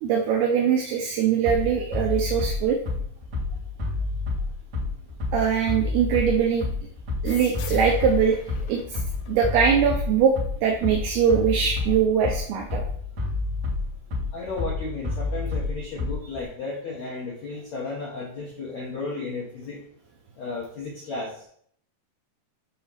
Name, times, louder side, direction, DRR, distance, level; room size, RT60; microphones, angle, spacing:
voice 1, 0.0-2.8 5.3-6.7 7.2-8.4 8.7-9.0 9.3-10.4 10.6-12.8, right 7 dB, 80° right, 1 dB, 2.6 m, -22 dB
Bass drum, 1.4-16.4, left 3 dB, 45° right, 1.7 m, -29 dB
sound 1, 7.3-10.5, left 5 dB, 90° left, 2.9 m, -41 dB
voice 2, 14.3-19.8 20.4-21.3, left 3 dB, 70° left, -4 dB, 1.7 m, -33 dB
8.7 x 2.9 x 5.5 m, 0.62 s
omnidirectional pair, 5.0 m